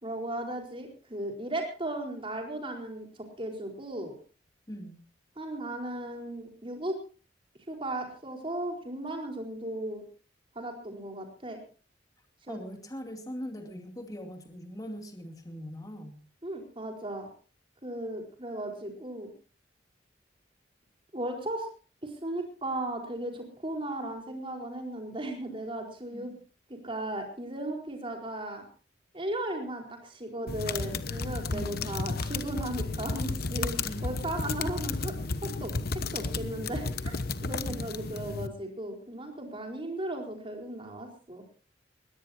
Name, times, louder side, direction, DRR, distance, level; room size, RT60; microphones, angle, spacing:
voice 1, 0.0-4.1 5.4-6.9 7.7-10.0 10.5-11.6 12.5-12.6 16.4-17.3 17.8-19.3 21.1-21.7 22.0-26.3 26.7-28.6 29.1-33.8 34.0-35.1 35.4-35.7 36.1-37.1 37.4-41.4, right 1 dB, 30° right, 2 dB, 4.4 m, -36 dB
voice 2, 4.7-5.0 12.5-16.2 26.1-26.4 31.5-31.9 33.8-34.2, equal, 20° left, 4 dB, 2.4 m, -41 dB
sound 1, 30.5-38.5, left 3 dB, 55° left, 1.0 m, -33 dB
21.5 x 17.0 x 2.8 m, 0.38 s
head